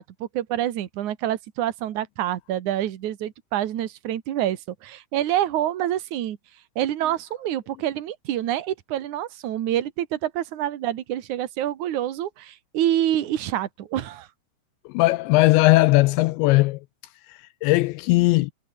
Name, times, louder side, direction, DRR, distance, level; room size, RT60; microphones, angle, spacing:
voice 1, 0.0-6.4 6.7-14.3, right 12 dB, 85° right, 1.7 m, -27 dB
voice 2, 14.9-16.8 17.3-18.5, left 21 dB, 90° left, 2.5 m, -18 dB
omnidirectional pair, 5.8 m